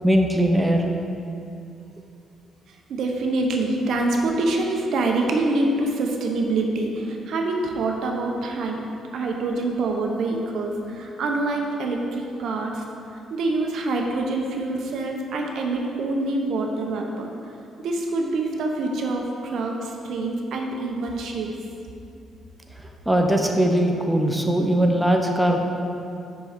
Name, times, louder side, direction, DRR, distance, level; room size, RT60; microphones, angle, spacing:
voice 1, 0.0-0.8 23.1-25.6, right 1 dB, 5° right, 2 dB, 0.7 m, -20 dB
voice 2, 2.9-8.8 9.1-12.8 13.3-17.3 17.8-21.6, right 2 dB, 70° right, 2 dB, 0.8 m, -25 dB
6.0 x 5.5 x 5.1 m, 2.6 s
cardioid pair, 90°, 0 cm